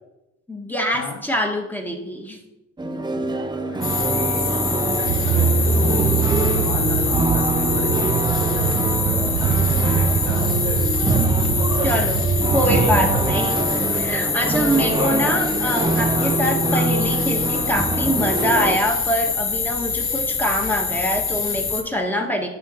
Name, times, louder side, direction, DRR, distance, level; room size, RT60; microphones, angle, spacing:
voice 1, 0.5-2.4 11.8-12.2 12.5-13.6 13.9-22.5, equal, 5° left, 2 dB, 1.5 m, -24 dB
sound 1, 2.8-18.8, right 3 dB, 15° right, 0.7 m, -24 dB
sound 2, 3.8-21.8, left 5 dB, 45° left, 1.2 m, -25 dB
voice 2, 4.1-7.0 7.3-8.0 9.8-10.6 11.9-12.1 12.7-13.2 14.8-15.3 15.6-15.7 16.1-16.3 16.7-16.9, left 5 dB, 70° left, 3 dB, 0.9 m, -35 dB
sound 3, 5.1-13.3, right 6 dB, 70° right, 0.7 m, -23 dB
9.2 x 3.9 x 6.2 m, 0.95 s
cardioid pair, 90°, 30 cm